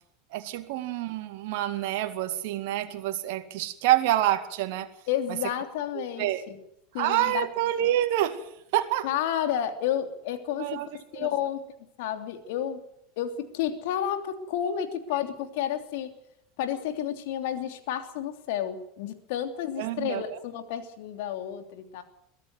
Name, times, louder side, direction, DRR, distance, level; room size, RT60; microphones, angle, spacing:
voice 1, 0.3-4.9 5.9-6.4 7.0-8.5 8.7-9.1 10.6-10.9 11.1-11.3 19.8-20.4, right 13 dB, 60° right, 8 dB, 2.1 m, -27 dB
voice 2, 5.1-6.6 6.9-7.5 9.0-10.8 11.1-11.6 12.0-12.8 13.2-16.1 16.6-22.0, left 10 dB, 60° left, 7 dB, 3.0 m, -31 dB
22.5 x 15.0 x 9.5 m, 0.77 s
figure-of-eight pair, 80°, 0 cm